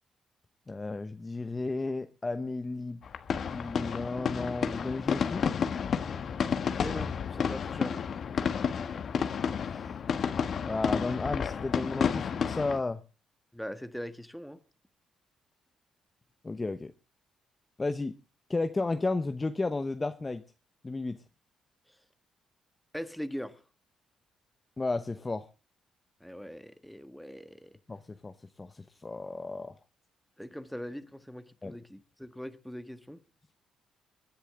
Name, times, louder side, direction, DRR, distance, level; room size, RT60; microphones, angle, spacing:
voice 1, 0.7-3.0 3.5-5.5 9.7-9.9 10.7-13.0 16.4-16.9 17.8-18.1 18.5-20.4 20.8-21.2 24.8-25.5 27.9-28.3 28.6-29.7 31.6-31.8, left 3 dB, 20° left, 0.9 m, -33 dB
sound 1, 3.0-12.8, left 7 dB, 55° left, 1.3 m, -31 dB
voice 2, 6.8-8.0 13.5-14.6 22.9-23.6 26.2-27.7 30.4-33.2, equal, ahead, 1.5 m, -41 dB
24.0 x 10.0 x 3.7 m
cardioid pair, 90°, 0 cm